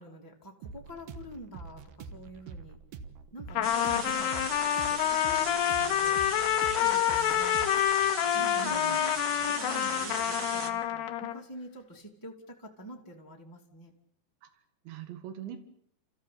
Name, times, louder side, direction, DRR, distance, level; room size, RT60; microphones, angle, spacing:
voice 1, 0.0-2.8 3.3-6.3 6.8-7.7 8.4-13.9, equal, 5° left, -1 dB, 1.6 m, -46 dB
sound 1, 0.6-10.3, right 5 dB, 65° right, 2.5 m, -46 dB
Trumpet, 3.5-11.4, left 12 dB, 75° left, 3.0 m, -28 dB
voice 2, 3.5-4.1 8.3-9.0 14.4-15.6, right 10 dB, 90° right, 10 dB, 4.1 m, -44 dB
sound 2, 3.6-10.7, right 4 dB, 50° right, 1.4 m, -38 dB
30.0 x 15.0 x 8.6 m, 0.68 s
omnidirectional pair, 5.1 m